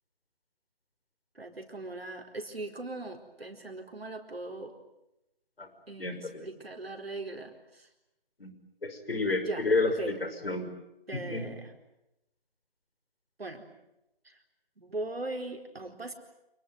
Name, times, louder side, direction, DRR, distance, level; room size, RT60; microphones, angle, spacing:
voice 1, 1.3-4.7 5.9-7.9 9.4-10.1 11.1-11.7 13.4-13.6 14.2-14.4 14.8-16.1, right 2 dB, 85° right, 3 dB, 4.4 m, -39 dB
voice 2, 6.0-6.5 8.4-8.5 8.8-10.7 11.1-11.5, left 3 dB, 75° left, 8 dB, 5.8 m, -30 dB
28.0 x 21.0 x 9.1 m, 0.90 s
figure-of-eight pair, 155°, 29 cm